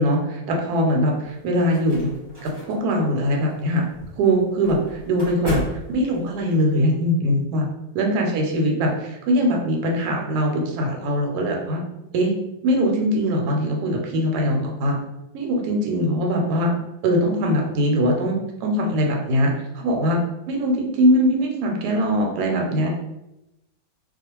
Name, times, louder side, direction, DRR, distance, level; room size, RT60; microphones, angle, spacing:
voice 1, 0.0-2.1 2.4-3.8 4.2-7.7 7.9-8.9 9.2-11.8 12.1-12.3 12.6-15.0 15.3-16.7 17.0-20.2 20.5-22.9, equal, 85° right, 0 dB, 1.1 m, -21 dB
sound 1, 1.2-6.6, equal, 40° right, 0.9 m, -36 dB
2.3 x 2.3 x 2.9 m, 0.91 s
omnidirectional pair, 1.6 m